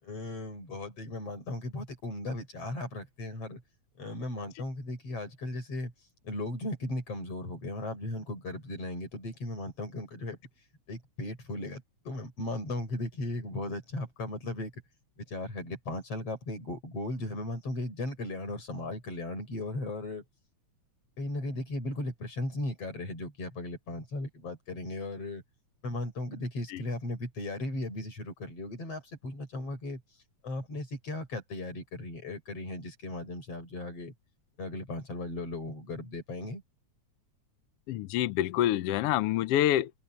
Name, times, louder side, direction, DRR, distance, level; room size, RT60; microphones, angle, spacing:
voice 1, 0.0-3.6 4.0-5.9 6.2-10.4 10.9-14.7 15.2-20.2 21.2-25.4 25.8-30.0 30.4-34.1 34.6-36.6, left 2 dB, 55° left, 7.9 m, -36 dB
voice 2, 37.9-39.9, left 13 dB, 75° left, 1.4 m, -26 dB
open air
omnidirectional pair, 3.3 m